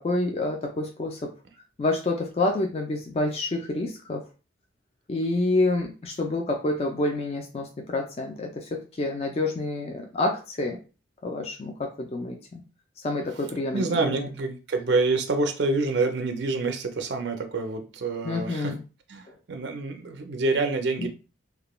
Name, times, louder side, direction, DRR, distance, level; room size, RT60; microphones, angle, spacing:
voice 1, 0.0-1.3 1.8-4.2 5.1-10.8 11.2-12.6 13.0-14.3 18.2-18.8 21.0-21.1, left 2 dB, 30° left, 2 dB, 0.3 m, -28 dB
voice 2, 13.7-18.7 19.1-21.1, right 3 dB, 60° right, 5 dB, 0.4 m, -27 dB
2.3 x 2.1 x 3.0 m, 0.34 s
head